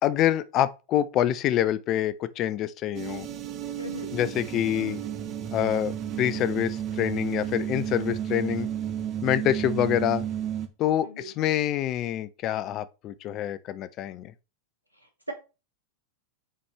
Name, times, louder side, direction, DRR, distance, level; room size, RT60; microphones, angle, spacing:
voice 1, 0.0-3.3 4.1-5.0 5.5-8.7 9.2-10.2 10.8-14.3, left 12 dB, 35° left, 0.5 m, -26 dB
sound 1, 2.9-10.7, right 10 dB, 35° right, 1.0 m, -32 dB
voice 2, 3.8-4.1 11.0-11.3 15.3-15.4, right 1 dB, 90° right, 1.5 m, -37 dB
7.3 x 4.2 x 3.4 m
figure-of-eight pair, 90°, 0 cm